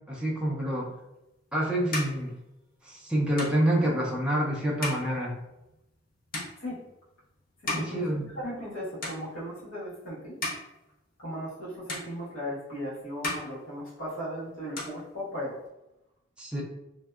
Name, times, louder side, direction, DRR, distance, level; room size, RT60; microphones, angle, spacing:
voice 1, 0.1-0.9 1.5-2.3 2.8-5.3 7.7-8.3 16.4-16.6, right 1 dB, 5° right, -4 dB, 0.4 m, -27 dB
sound 1, 1.1-8.7 9.0-9.7 10.1-11.6 11.9-12.8 13.1-14.3 14.6-15.7, left 2 dB, 45° left, 0.7 m, -39 dB
voice 2, 7.6-8.1 8.3-10.3 11.2-15.6 16.6-16.7, equal, 85° left, -8 dB, 1.3 m, -37 dB
2.6 x 2.2 x 2.2 m, 0.91 s
head